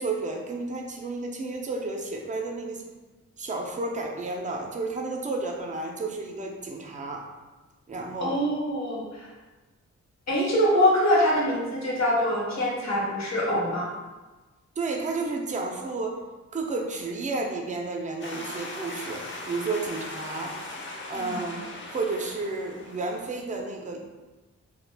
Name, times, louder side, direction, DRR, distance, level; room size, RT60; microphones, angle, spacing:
voice 1, 0.0-2.8 3.4-7.2 7.9-8.4 14.8-16.2 16.5-20.6 21.1-21.6 21.9-24.0, right 3 dB, 25° right, 1 dB, 0.4 m, -32 dB
voice 2, 8.2-9.3 10.3-13.9 21.1-21.4, equal, 65° left, -4 dB, 0.9 m, -24 dB
sound 1, 18.2-23.3, left 2 dB, 40° left, 0.5 m, -39 dB
2.4 x 2.1 x 3.2 m, 1.2 s
wide cardioid pair, 85°, 29 cm